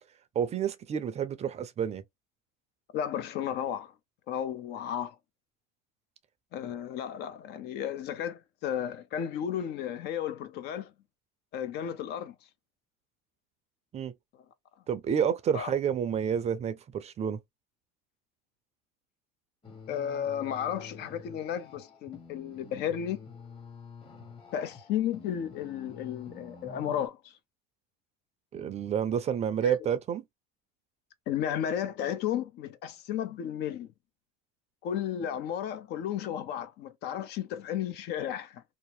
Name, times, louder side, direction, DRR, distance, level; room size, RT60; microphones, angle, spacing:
voice 1, 0.4-2.0 13.9-14.1 14.9-17.4 28.5-30.2, right 8 dB, 35° right, 0.5 m, -29 dB
voice 2, 2.9-3.9 4.3-5.2 6.5-10.9 11.5-12.3 15.5-15.7 19.9-23.2 24.5-27.3 29.6-29.7 31.3-33.9 34.8-38.6, left 9 dB, 55° left, 0.6 m, -33 dB
sound 1, 19.6-27.1, left 4 dB, 25° left, 1.3 m, -49 dB
2.8 x 2.0 x 3.0 m
supercardioid pair, 100°, 20 cm